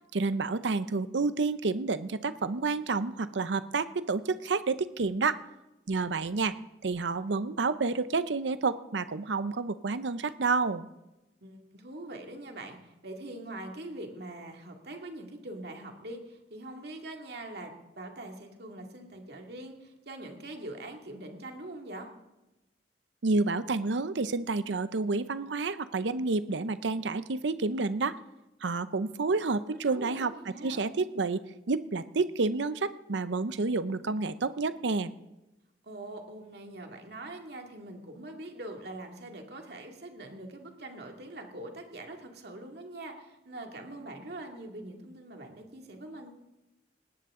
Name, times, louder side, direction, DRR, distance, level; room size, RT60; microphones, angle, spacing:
voice 1, 0.1-5.4 5.9-6.6 6.8-10.9 23.2-28.2 28.6-30.3 30.6-35.1, right 3 dB, 75° right, 14 dB, 0.7 m, -29 dB
voice 2, 11.4-22.1 29.9-30.8 35.8-46.3, right 1 dB, 60° right, 3 dB, 2.3 m, -43 dB
20.0 x 18.0 x 3.8 m, 0.99 s
head